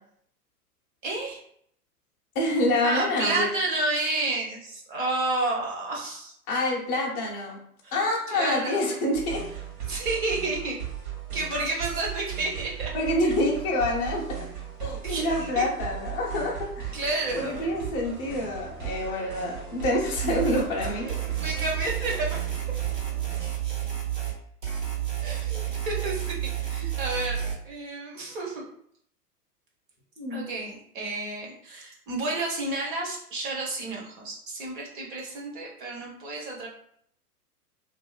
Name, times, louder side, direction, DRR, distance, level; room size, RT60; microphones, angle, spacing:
voice 1, 1.0-1.4 2.8-6.3 7.8-8.0 8.3-9.0 9.8-10.8 11.3-12.9 15.0-15.7 16.9-18.0 21.1-22.4 25.2-28.6 30.3-36.7, right 2 dB, 35° right, -1 dB, 0.6 m, -31 dB
voice 2, 2.3-3.5 6.5-7.6 7.9-9.4 11.5-11.6 12.9-14.5 14.8-17.0 17.3-21.1 30.2-30.4, left 1 dB, 20° left, -3 dB, 0.5 m, -27 dB
sound 1, 9.1-23.4, right 9 dB, 65° right, 1.0 m, -38 dB
sound 2, 20.2-20.7 21.1-24.4 24.6-27.5, right 11 dB, 85° right, 1.1 m, -30 dB
2.5 x 2.4 x 2.3 m, 0.67 s
figure-of-eight pair, 110°, 48 cm